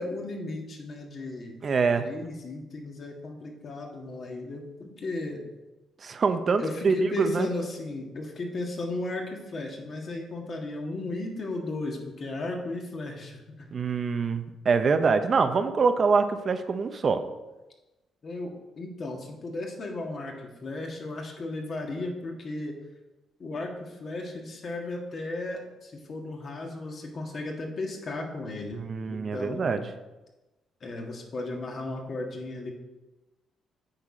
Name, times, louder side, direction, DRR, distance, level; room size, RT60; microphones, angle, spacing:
voice 1, 0.0-1.6 2.0-5.4 6.6-13.7 18.2-22.7 23.4-28.8 29.1-29.8 30.8-32.7, left 2 dB, 50° left, 1 dB, 1.7 m, -35 dB
voice 2, 1.6-2.0 6.0-7.5 13.7-17.2 28.9-29.8, right 5 dB, 45° right, 8 dB, 0.6 m, -25 dB
8.9 x 4.2 x 4.9 m, 1.1 s
cardioid pair, 90°, 0 cm